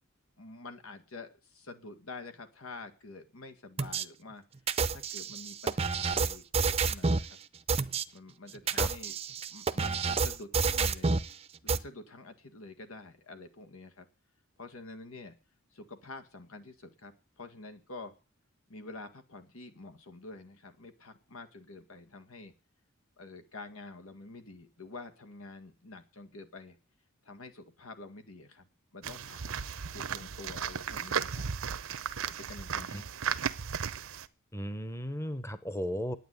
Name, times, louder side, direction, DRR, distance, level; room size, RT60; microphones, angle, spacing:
voice 1, 0.4-4.4 4.9-7.4 8.1-9.2 9.5-11.1 11.6-14.1 14.6-15.3 15.7-18.1 18.7-22.5 23.2-26.8 27.2-29.5 29.9-31.5 32.3-33.1, left 3 dB, 90° left, 7 dB, 1.9 m, -48 dB
sound 1, 3.8-4.0 4.7-7.3 7.7-8.0 8.5-11.3 11.7-11.8, right 4 dB, 30° right, 0.6 m, -29 dB
sound 2, 29.0-34.3, right 7 dB, 80° right, 0.8 m, -35 dB
voice 2, 34.5-36.2, equal, 15° left, 12 dB, 0.9 m, -35 dB
9.4 x 9.3 x 9.3 m, 0.33 s
head